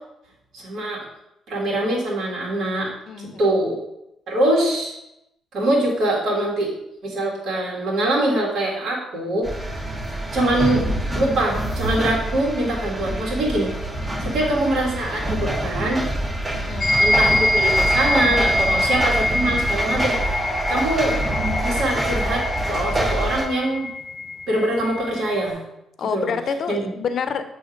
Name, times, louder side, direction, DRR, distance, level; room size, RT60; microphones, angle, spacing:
voice 1, 0.5-1.0 1.5-2.9 3.2-3.8 4.3-4.9 5.5-6.7 7.0-9.5 10.3-10.8 11.1-13.7 14.2-16.1 17.0-21.2 21.6-23.9 24.5-25.6 26.1-26.3 26.7-26.8, right 1 dB, 70° right, -4 dB, 1.6 m, -23 dB
voice 2, 3.1-3.6 16.5-17.0 26.0-27.4, left 6 dB, 60° left, 9 dB, 0.5 m, -28 dB
sound 1, 9.4-23.4, right 1 dB, 35° right, 2.2 m, -26 dB
sound 2, 16.8-25.5, left 1 dB, 20° left, 0.8 m, -24 dB
7.1 x 2.7 x 5.1 m, 0.85 s
cardioid pair, 90°, 0 cm